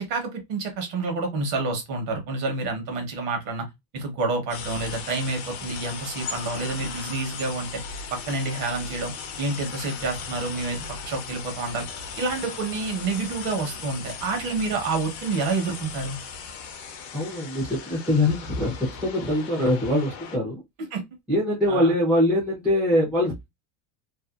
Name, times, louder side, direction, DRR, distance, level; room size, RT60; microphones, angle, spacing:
voice 1, 0.0-3.6 3.9-7.8 8.1-9.1 9.4-11.9 12.2-16.2 20.8-21.0 21.7-21.9, right 3 dB, 45° right, 1.0 m, -28 dB
sound 1, 4.5-20.4, left 5 dB, 45° left, 0.5 m, -37 dB
voice 2, 17.1-18.7 19.0-20.6 21.3-23.5, left 1 dB, 5° right, 0.4 m, -23 dB
2.6 x 2.2 x 2.3 m
cardioid pair, 170°, 48 cm